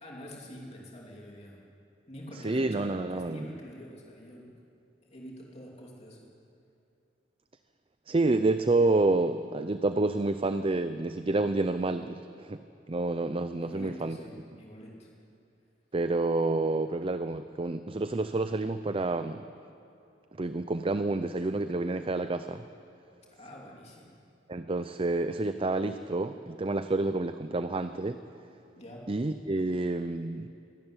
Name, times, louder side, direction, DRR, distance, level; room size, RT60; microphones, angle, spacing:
voice 1, 0.0-1.6 2.1-4.5 5.0-6.3 13.6-15.1 23.3-24.2 28.8-29.1, equal, 35° left, -2 dB, 2.8 m, -46 dB
voice 2, 2.4-3.5 8.1-12.6 12.9-14.2 15.9-19.4 20.4-22.6 24.5-28.2 29.1-30.5, right 2 dB, 30° right, 10 dB, 0.6 m, -29 dB
25.0 x 12.5 x 9.9 m, 2.7 s
head